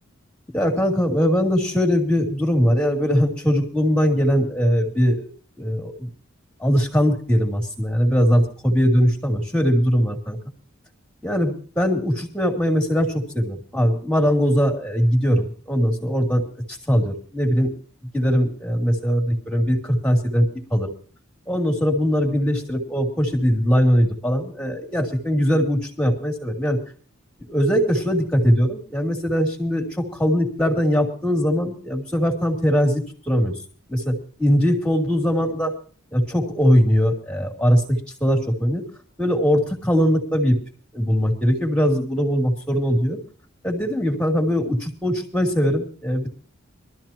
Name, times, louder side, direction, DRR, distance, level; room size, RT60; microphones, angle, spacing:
voice 1, 0.5-5.3 5.6-6.1 6.6-10.4 11.2-16.4 16.7-17.7 18.1-20.9 21.5-26.8 27.4-33.5 33.9-35.7 36.1-38.8 39.2-40.6 40.9-43.2 43.6-46.3, equal, 5° left, 2 dB, 2.9 m, -21 dB
22.0 x 13.5 x 3.0 m, 0.42 s
head